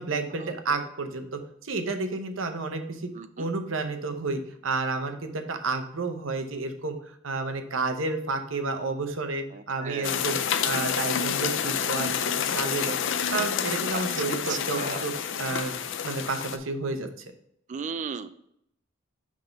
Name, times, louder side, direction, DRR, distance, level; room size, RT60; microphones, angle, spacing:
voice 1, 0.0-3.1 3.4-13.1 13.3-15.8 16.0-17.1, right 3 dB, 70° right, 7 dB, 0.8 m, -31 dB
voice 2, 3.1-3.5 9.5-10.1 13.9-14.0 14.5-15.0 17.7-18.4, right 6 dB, 40° right, 12 dB, 0.3 m, -35 dB
sound 1, 10.0-16.6, left 8 dB, 65° left, 0.5 m, -28 dB
5.8 x 3.7 x 5.1 m, 0.74 s
head